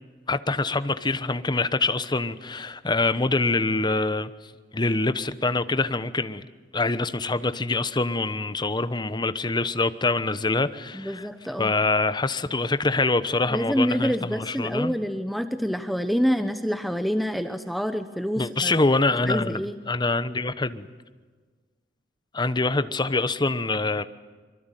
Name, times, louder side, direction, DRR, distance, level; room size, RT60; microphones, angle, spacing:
voice 1, 0.3-4.3 4.7-6.4 6.7-11.3 11.6-14.9 18.4-19.6 19.9-20.9 22.3-24.0, left 3 dB, 25° left, 1.0 m, -25 dB
voice 2, 10.9-11.7 13.5-18.7 19.3-19.8, equal, ahead, 1.0 m, -27 dB
25.0 x 23.5 x 9.2 m
head